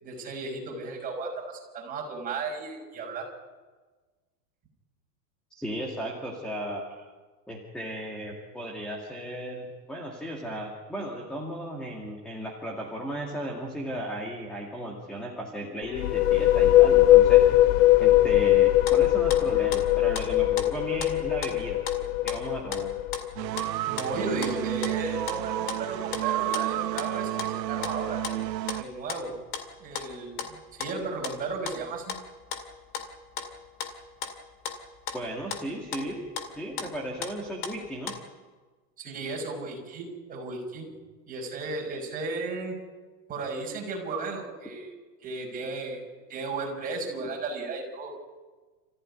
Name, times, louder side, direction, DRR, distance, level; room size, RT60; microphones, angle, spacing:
voice 1, 0.0-3.3 23.8-28.2 28.8-29.4 29.8-32.1 39.0-40.9 41.3-42.7 43.3-44.9 45.2-46.0 46.3-48.1, right 3 dB, 15° right, 0 dB, 5.6 m, -34 dB
voice 2, 5.5-6.8 7.5-17.4 18.0-21.8 22.2-22.9 35.1-38.1, equal, ahead, 0 dB, 2.1 m, -35 dB
sound 1, 15.8-23.5, left 14 dB, 50° left, 0.8 m, -20 dB
sound 2, 18.9-19.4 19.7-21.1 21.4-34.4 34.7-38.2, left 7 dB, 25° left, 2.2 m, -37 dB
sound 3, 23.4-28.8, right 15 dB, 85° right, 1.0 m, -31 dB
29.0 x 15.0 x 9.7 m, 1.4 s
supercardioid pair, 165°, 48 cm